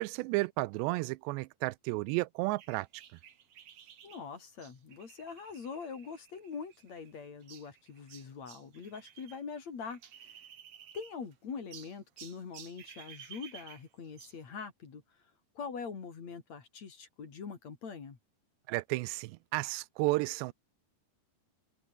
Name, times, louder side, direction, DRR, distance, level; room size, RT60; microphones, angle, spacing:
voice 1, 0.0-2.9 18.7-20.5, right 22 dB, 85° right, 2.8 m, -32 dB
sound 1, 2.6-9.4 9.7-11.3 11.7-14.4, right 9 dB, 55° right, 1.6 m, -54 dB
voice 2, 4.0-10.4 10.9-15.0 15.6-18.2, left 5 dB, 45° left, 4.0 m, -43 dB
omnidirectional pair, 4.9 m